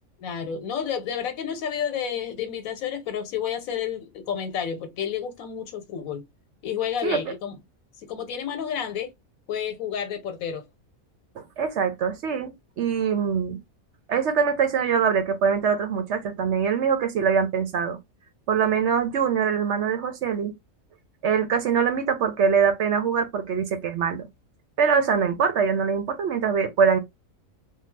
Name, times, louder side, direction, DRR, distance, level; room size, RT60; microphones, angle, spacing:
voice 1, 0.2-6.2 6.6-7.6 8.1-9.1 9.5-10.6, left 8 dB, 80° left, 1.2 m, -30 dB
voice 2, 7.0-7.3 11.4-13.6 14.1-18.0 18.5-20.5 21.2-24.3 24.8-27.0, right 6 dB, 65° right, 0.9 m, -23 dB
2.7 x 2.2 x 3.2 m
omnidirectional pair, 1.4 m